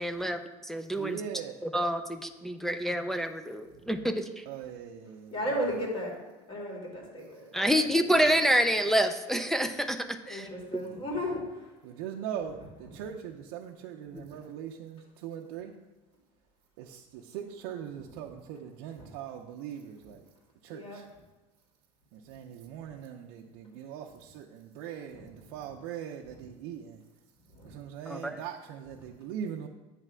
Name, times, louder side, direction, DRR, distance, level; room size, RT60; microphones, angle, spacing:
voice 1, 0.0-1.2 1.7-4.4 7.5-10.4 28.1-28.4, equal, 5° left, 6 dB, 0.3 m, -28 dB
voice 2, 0.9-1.6 4.5-5.3 7.5-8.2 10.8-11.0 11.8-15.7 16.8-20.2 20.6-21.0 22.1-27.0 27.6-29.7, right 9 dB, 85° right, 0 dB, 0.5 m, -41 dB
voice 3, 3.7-4.0 5.3-6.1 6.5-7.5 10.3-11.7 12.9-13.0 14.3-14.4 18.9-19.1 20.7-21.0 25.1-25.7 27.5-27.7, equal, 40° left, -1 dB, 2.0 m, -35 dB
8.3 x 3.3 x 6.1 m, 1.1 s
cardioid pair, 140°, 14 cm